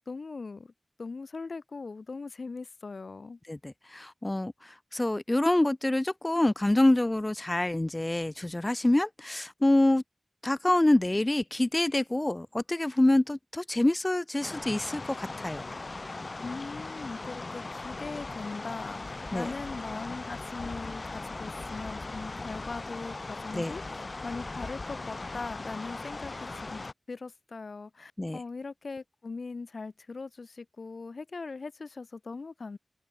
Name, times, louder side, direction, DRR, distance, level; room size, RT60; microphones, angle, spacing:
voice 1, 0.1-0.7 1.0-3.4 16.4-32.8, left 4 dB, 70° left, 2.7 m, -40 dB
voice 2, 3.5-10.0 10.4-15.6 19.3-19.5 23.5-23.7 28.2-28.4, left 1 dB, 25° left, 0.7 m, -26 dB
sound 1, 14.4-26.9, left 3 dB, 50° left, 6.6 m, -39 dB
open air
wide cardioid pair, 70°, 0 cm